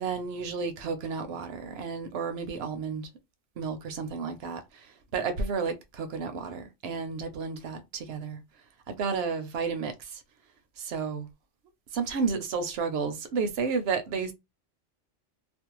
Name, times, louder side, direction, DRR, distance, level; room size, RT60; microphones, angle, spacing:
voice 1, 0.0-3.1 3.6-8.4 8.9-10.2 10.8-11.3 11.9-14.3, right 5 dB, 65° right, 0.7 m, -32 dB
2.5 x 2.0 x 2.9 m
omnidirectional pair, 1.3 m